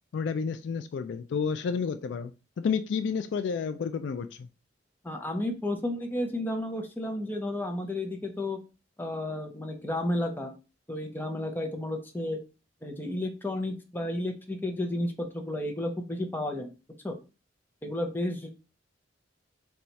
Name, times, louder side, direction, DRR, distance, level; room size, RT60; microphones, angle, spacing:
voice 1, 0.1-2.3 2.6-4.5, left 6 dB, 75° left, 0.3 m, -30 dB
voice 2, 5.0-8.6 9.0-10.5 10.9-12.4 12.8-16.7 17.0-17.2 17.8-18.5, left 1 dB, 10° left, 0.6 m, -32 dB
4.3 x 2.3 x 4.0 m
head